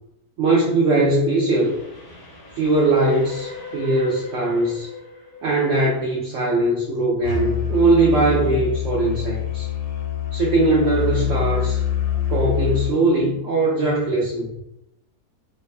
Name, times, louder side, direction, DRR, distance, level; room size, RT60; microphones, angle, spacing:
voice 1, 0.4-1.8 2.5-4.9 5.4-9.7 10.3-11.8 12.3-14.5, right 2 dB, 70° right, -3 dB, 0.8 m, -20 dB
Train, 1.5-6.8, left 4 dB, 40° left, 0.6 m, -39 dB
Musical instrument, 7.2-12.9, left 9 dB, 75° left, 1.0 m, -25 dB
2.7 x 2.1 x 2.4 m, 0.85 s
omnidirectional pair, 1.6 m